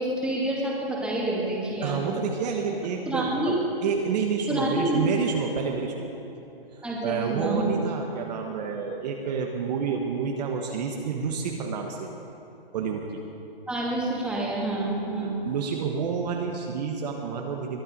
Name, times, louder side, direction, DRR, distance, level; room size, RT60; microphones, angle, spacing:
voice 1, 0.0-2.2 3.1-3.6 4.5-5.0 6.8-7.7 13.7-15.4, right 1 dB, 5° right, -5 dB, 2.4 m, -28 dB
voice 2, 1.8-3.6 3.8-6.1 6.7-12.1 12.7-13.1 15.4-17.8, right 6 dB, 45° right, 2 dB, 1.3 m, -29 dB
22.0 x 9.7 x 5.4 m, 2.9 s
hypercardioid pair, 145°, 30 cm